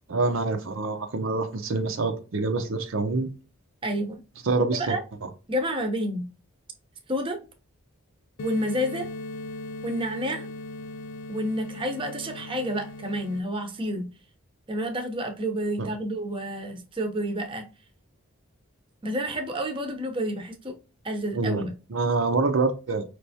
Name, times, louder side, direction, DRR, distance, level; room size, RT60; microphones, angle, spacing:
voice 1, 0.1-3.3 4.4-5.0 15.8-15.9 21.3-23.0, right 3 dB, 70° right, 0.6 m, -26 dB
voice 2, 3.8-4.2 4.6-5.0 5.5-6.3 7.1-7.4 8.4-9.1 9.8-10.5 11.3-14.1 14.7-17.7 19.0-20.7 21.0-21.7, equal, 25° right, 0.7 m, -29 dB
sound 1, 8.4-13.4, left 2 dB, 65° left, 0.4 m, -38 dB
5.2 x 3.3 x 2.7 m
head